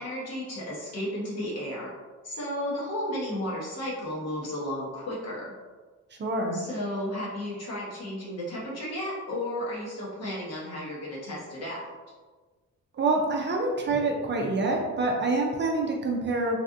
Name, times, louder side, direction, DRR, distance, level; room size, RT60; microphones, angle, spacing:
voice 1, 0.0-1.9 2.2-5.5 6.5-11.9, left 1 dB, 55° left, -5 dB, 1.3 m, -33 dB
voice 2, 6.1-6.6 12.9-16.6, right 2 dB, 40° right, 1 dB, 0.5 m, -26 dB
3.3 x 2.4 x 2.6 m, 1.4 s
cardioid pair, 90°, 30 cm